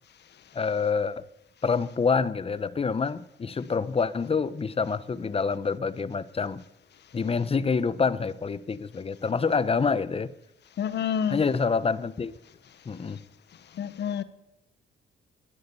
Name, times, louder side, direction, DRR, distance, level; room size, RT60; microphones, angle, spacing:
voice 1, 0.5-1.3 1.6-6.6 7.1-10.3 11.3-12.3 12.9-13.2, left 5 dB, 30° left, 17 dB, 0.8 m, -27 dB
voice 2, 10.8-11.4 13.8-14.2, left 8 dB, 60° left, 14 dB, 1.2 m, -28 dB
20.5 x 11.5 x 5.6 m, 0.87 s
cardioid pair, 90°, 20 cm